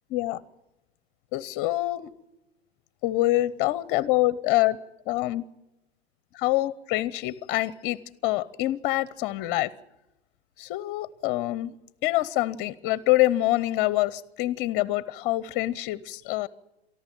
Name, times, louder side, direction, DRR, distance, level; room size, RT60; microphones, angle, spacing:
voice 1, 0.1-0.4 1.3-2.1 3.0-4.8 5.1-5.4 6.3-9.7 10.6-11.7 12.0-16.5, left 17 dB, 30° left, 19 dB, 0.8 m, -26 dB
23.5 x 14.0 x 9.1 m, 0.93 s
hypercardioid pair, 115°, 33 cm